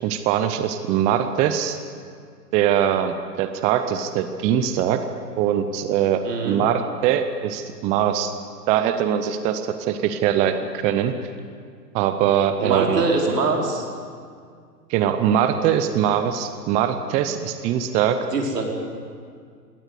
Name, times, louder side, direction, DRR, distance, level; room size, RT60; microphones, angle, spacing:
voice 1, 0.0-1.8 2.5-5.0 5.4-8.3 8.7-11.1 11.9-13.0 14.9-18.2, right 9 dB, 15° right, 9 dB, 0.5 m, -22 dB
voice 2, 6.2-6.6 12.6-13.9 18.3-18.6, right 3 dB, 70° right, 1 dB, 4.7 m, -23 dB
21.0 x 18.0 x 8.2 m, 2.1 s
figure-of-eight pair, 115°, 50 cm